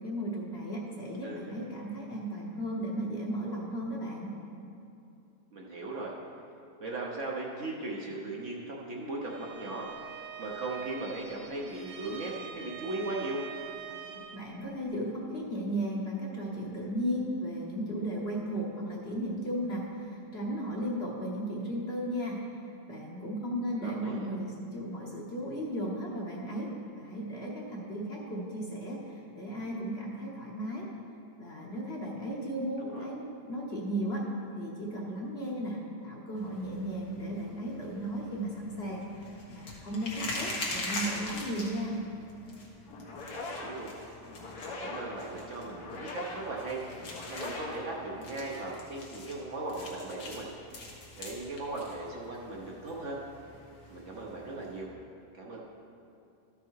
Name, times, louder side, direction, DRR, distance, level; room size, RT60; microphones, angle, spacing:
voice 1, 0.0-4.3 13.9-14.1 14.3-22.4 22.9-30.9 31.4-34.3 34.6-42.0, equal, 40° left, -3 dB, 1.2 m, -35 dB
voice 2, 1.2-1.6 5.5-6.1 6.8-13.4 23.8-24.3 32.8-33.1 43.3-43.9 44.6-46.8 47.3-50.5 50.8-50.9 51.2-53.2 53.9-54.9 55.4-55.6, right 2 dB, 50° right, -2 dB, 1.1 m, -38 dB
Bowed string instrument, 9.2-14.5, right 8 dB, 85° right, 1.4 m, -45 dB
sound 1, 36.4-54.8, left 2 dB, 85° left, 1.9 m, -43 dB
sound 2, 42.9-48.7, left 2 dB, 70° left, 1.5 m, -42 dB
13.0 x 5.6 x 4.6 m, 2.7 s
omnidirectional pair, 1.8 m